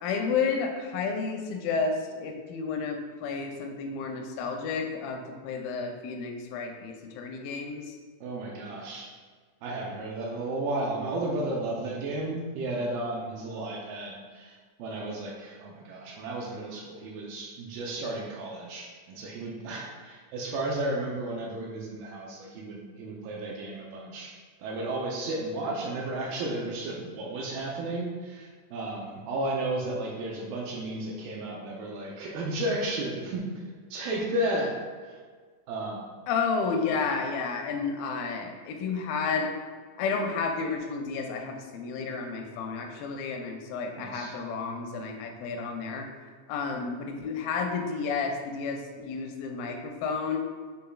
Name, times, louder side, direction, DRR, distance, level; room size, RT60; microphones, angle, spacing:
voice 1, 0.0-7.9 36.3-39.5 40.0-46.1 46.5-50.4, left 5 dB, 85° left, 3 dB, 2.3 m, -31 dB
voice 2, 8.2-9.1 9.6-24.3 24.6-33.6 33.9-34.7 35.0-35.2 35.7-36.1 44.0-44.3, right 1 dB, 80° right, -3 dB, 2.2 m, -33 dB
6.8 x 3.3 x 2.3 m, 1.5 s
omnidirectional pair, 4.1 m